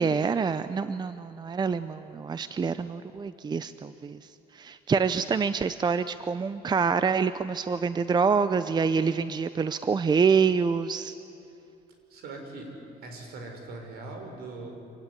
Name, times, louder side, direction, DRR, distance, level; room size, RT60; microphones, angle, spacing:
voice 1, 0.0-11.1, right 5 dB, 25° right, 13 dB, 0.6 m, -26 dB
voice 2, 12.1-12.8 13.0-14.8, right 2 dB, 70° right, 3 dB, 5.4 m, -41 dB
26.0 x 17.0 x 9.9 m, 2.7 s
cardioid pair, 110°, 17 cm